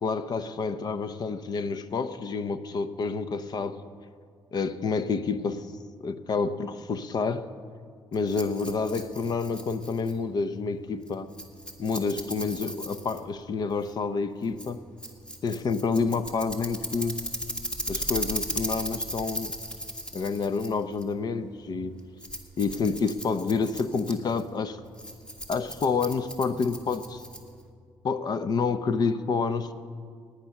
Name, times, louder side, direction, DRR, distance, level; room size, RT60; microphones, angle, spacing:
voice 1, 0.0-3.8 4.5-5.7 6.0-7.5 8.1-11.3 11.8-14.8 15.4-17.2 17.9-19.5 20.1-22.0 22.6-24.8 25.5-27.2 28.0-29.7, left 4 dB, 50° left, 12 dB, 0.8 m, -28 dB
Rattle, 8.1-27.7, equal, 10° left, 1.9 m, -37 dB
18.0 x 9.8 x 5.9 m, 2.1 s
cardioid pair, 85°, 9 cm